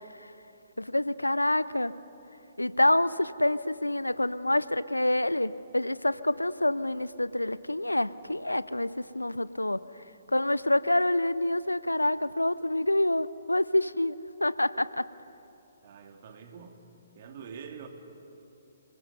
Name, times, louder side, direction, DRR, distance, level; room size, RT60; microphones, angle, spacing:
voice 1, 0.8-2.0 2.6-9.8 10.3-15.1, left 1 dB, 90° left, 18 dB, 0.5 m, -27 dB
voice 2, 15.8-16.9 17.2-17.9, right 6 dB, 45° right, 5 dB, 2.2 m, -45 dB
28.0 x 19.5 x 5.4 m, 2.9 s
figure-of-eight pair, 130°, 0 cm